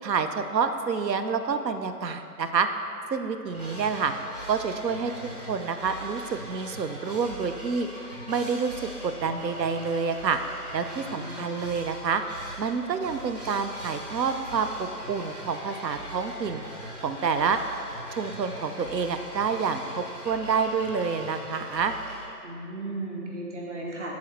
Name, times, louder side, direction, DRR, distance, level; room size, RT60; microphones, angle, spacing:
voice 1, 0.0-2.7 3.1-4.1 4.5-5.1 5.5-7.9 8.3-8.7 9.0-10.4 10.7-12.2 12.6-16.6 17.0-17.6 18.2-21.9, right 5 dB, 80° right, 8 dB, 0.7 m, -28 dB
sound 1, 3.5-22.3, equal, 25° right, 0.9 m, -41 dB
voice 2, 11.1-11.5 22.4-24.2, right 2 dB, 45° right, -3 dB, 1.2 m, -36 dB
10.5 x 4.1 x 3.2 m, 2.6 s
hypercardioid pair, 180°, 49 cm